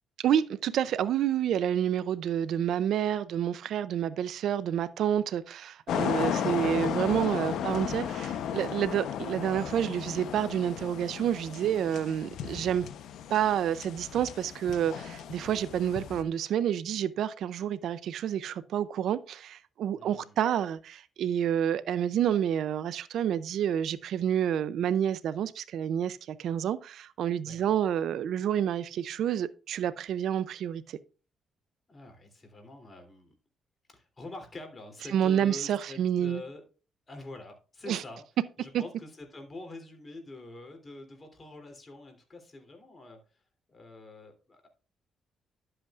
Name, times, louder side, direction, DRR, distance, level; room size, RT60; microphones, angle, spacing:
voice 1, 0.2-12.9 13.3-31.0 35.1-36.4 37.9-38.0 38.7-38.8, right 9 dB, 75° right, 0.5 m, -29 dB
sound 1, 5.9-16.2, left 9 dB, 80° left, 0.8 m, -35 dB
voice 2, 19.9-20.4 27.4-27.7 31.9-33.3 33.9-36.6 37.1-38.2 38.6-43.4 43.7-44.7, left 2 dB, 30° left, 2.9 m, -46 dB
11.5 x 7.8 x 2.4 m
cardioid pair, 90°, 0 cm